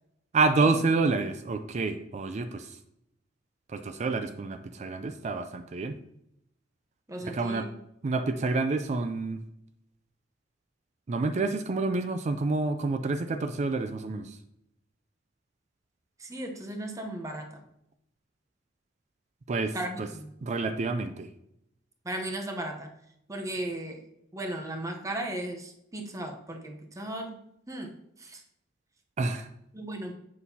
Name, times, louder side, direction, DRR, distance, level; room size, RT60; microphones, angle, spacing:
voice 1, 0.3-2.8 3.7-6.0 7.3-7.7 8.0-9.4 11.1-14.4 19.5-20.1 20.4-21.3 29.2-29.5, right 3 dB, 40° right, 9 dB, 0.4 m, -28 dB
voice 2, 7.1-7.7 16.2-17.6 19.7-20.3 22.0-22.9 23.3-24.0 24.3-27.4 27.7-28.4 29.7-30.2, right 1 dB, 15° right, 3 dB, 0.8 m, -36 dB
7.2 x 6.2 x 2.8 m, 0.80 s
head